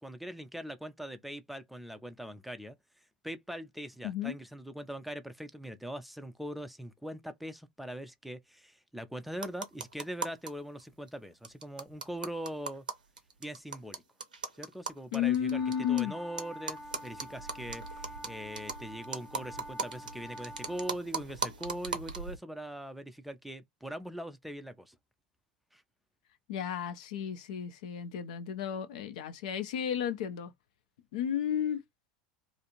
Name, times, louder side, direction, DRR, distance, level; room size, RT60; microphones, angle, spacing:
voice 1, 0.0-12.9 13.4-14.0 14.5-15.6 15.9-25.0 25.7-25.8, right 1 dB, ahead, 0.4 m, -42 dB
voice 2, 4.0-4.4 15.1-16.1 26.5-30.5 31.1-31.8, left 9 dB, 60° left, 0.5 m, -32 dB
sound 1, 9.3-10.5 10.8-10.9 11.1-11.2 11.4-16.0 16.4-22.4, right 5 dB, 85° right, 0.7 m, -39 dB
sound 2, 15.5-21.0, equal, 15° left, 0.9 m, -47 dB
2.5 x 2.4 x 2.8 m
figure-of-eight pair, 85°, 4 cm